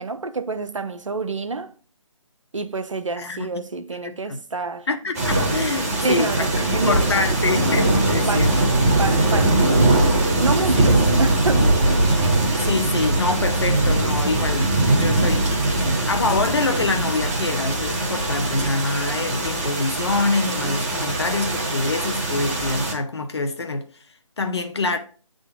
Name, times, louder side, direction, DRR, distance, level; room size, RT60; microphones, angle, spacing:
voice 1, 0.0-1.7 2.5-4.9 6.0-7.0 8.3-8.6 8.9-10.0 10.4-12.0, right 3 dB, 70° right, 0.6 m, -28 dB
voice 2, 3.2-3.5 4.0-4.4 4.9-8.5 10.8-10.9 12.6-15.5 16.0-23.8 24.4-25.0, left 3 dB, 55° left, 0.9 m, -25 dB
sound 1, 5.1-22.9, right 2 dB, 30° right, 1.3 m, -21 dB
8.1 x 3.9 x 3.7 m
figure-of-eight pair, 150°, 17 cm